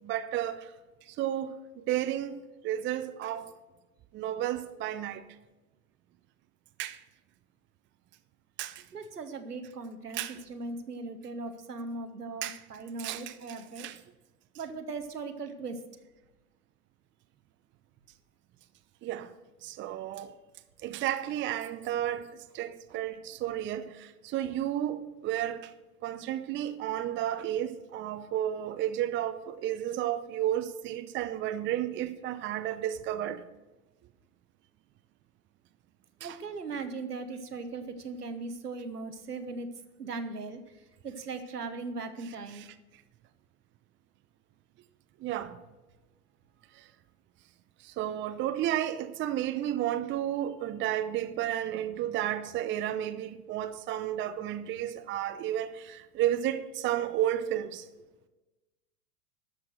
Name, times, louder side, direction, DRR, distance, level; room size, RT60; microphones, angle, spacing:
voice 1, 0.0-0.7 1.1-2.4 2.6-3.5 4.1-5.2 6.8-7.0 8.6-8.8 10.1-10.4 12.4-12.6 13.0-14.0 19.0-19.3 19.6-20.3 20.8-22.3 22.5-25.7 26.0-33.4 36.2-36.4 42.5-42.7 45.2-45.6 47.8-57.9, right 12 dB, 25° right, 0.7 m, -32 dB
voice 2, 8.9-13.9 14.5-15.8 36.2-39.7 40.0-40.6 41.0-42.7, right 3 dB, 85° right, 1.2 m, -38 dB
12.5 x 6.2 x 6.2 m
figure-of-eight pair, 90°, 46 cm